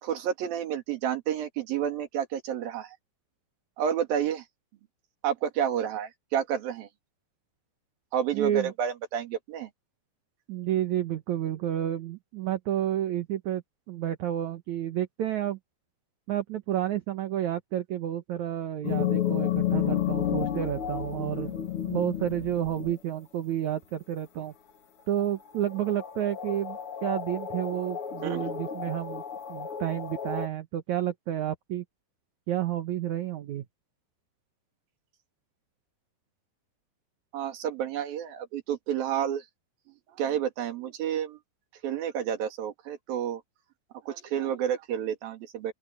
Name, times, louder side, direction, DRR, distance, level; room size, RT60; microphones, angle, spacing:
voice 1, 0.0-3.0 3.8-4.4 5.2-6.9 8.1-9.7 28.2-28.5 37.3-39.5 40.2-41.4 41.8-43.4 44.0-45.7, right 9 dB, 60° right, 3.8 m, -30 dB
voice 2, 8.3-8.7 10.5-13.6 13.9-15.6 16.3-21.6 21.9-24.5 25.1-29.2 29.5-31.8 32.5-33.6, right 11 dB, 85° right, 1.6 m, -30 dB
sound 1, 18.8-23.2 25.2-25.3 25.6-30.5, left 10 dB, 80° left, 1.2 m, -31 dB
open air
omnidirectional pair, 5.1 m